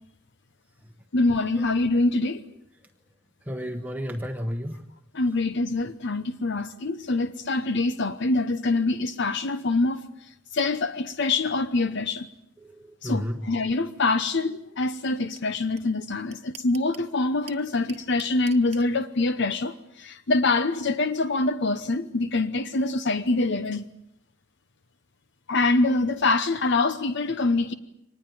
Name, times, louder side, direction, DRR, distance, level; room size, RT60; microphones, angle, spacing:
voice 1, 1.1-2.4 5.1-12.3 13.0-23.9 25.5-27.7, left 3 dB, 60° left, 0.9 m, -25 dB
voice 2, 3.4-4.8 12.6-13.4, equal, 10° right, 1.1 m, -32 dB
sound 1, 15.4-15.5 15.8-15.9 16.1-17.1 17.5-18.8, right 8 dB, 35° right, 1.2 m, -44 dB
24.5 x 20.0 x 9.2 m
head